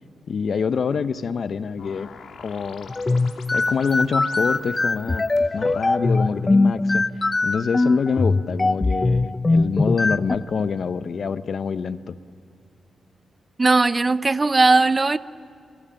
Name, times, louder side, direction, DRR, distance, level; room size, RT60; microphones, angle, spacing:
voice 1, 0.3-2.1 2.4-5.2 5.5-7.0 7.4-12.2, left 6 dB, 60° left, 13 dB, 0.9 m, -26 dB
sound 1, 1.8-6.4, left 6 dB, 80° left, 2.5 m, -45 dB
sound 2, 2.9-10.4, left 2 dB, 25° left, 0.7 m, -21 dB
voice 2, 13.6-15.2, right 3 dB, 30° right, 15 dB, 0.7 m, -18 dB
28.5 x 20.5 x 8.9 m, 2.5 s
cardioid pair, 70°, 0 cm